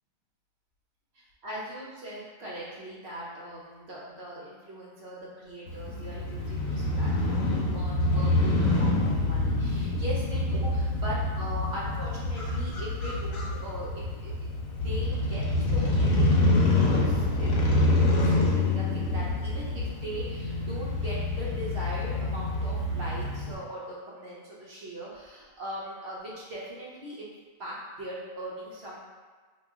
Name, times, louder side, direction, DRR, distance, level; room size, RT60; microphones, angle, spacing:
voice 1, 1.1-29.0, right 1 dB, 55° right, -6 dB, 0.8 m, -40 dB
Crow / Motorcycle, 5.7-23.5, left 2 dB, 85° left, 1.2 m, -26 dB
3.0 x 2.3 x 3.5 m, 1.5 s
omnidirectional pair, 1.7 m